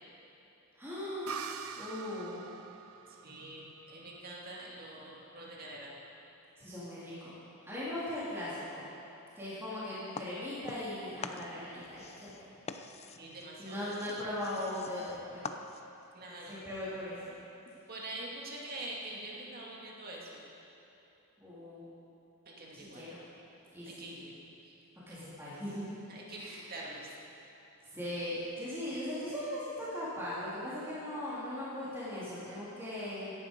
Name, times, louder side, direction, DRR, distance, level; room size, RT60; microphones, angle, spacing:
voice 1, 0.7-1.4 1.8-2.4 6.6-7.3 7.6-8.9 9.4-12.3 13.6-15.4 16.5-17.3 21.4-21.9 22.7-23.2 23.7-24.1 25.1-26.0 26.4-26.6 27.9-33.3, left 1 dB, 10° right, -11 dB, 3.2 m, -39 dB
sound 1, 1.3-4.8, right 6 dB, 75° right, 0.7 m, -45 dB
voice 2, 3.1-5.9 13.2-13.9 16.1-16.6 17.9-20.4 22.5-23.0 23.8-24.4 24.6-24.7 26.1-27.1, right 2 dB, 45° right, -3 dB, 2.4 m, -45 dB
sound 2, 10.1-11.0 11.2-16.1, left 4 dB, 30° left, 0.6 m, -45 dB
17.0 x 11.0 x 5.3 m, 2.9 s
head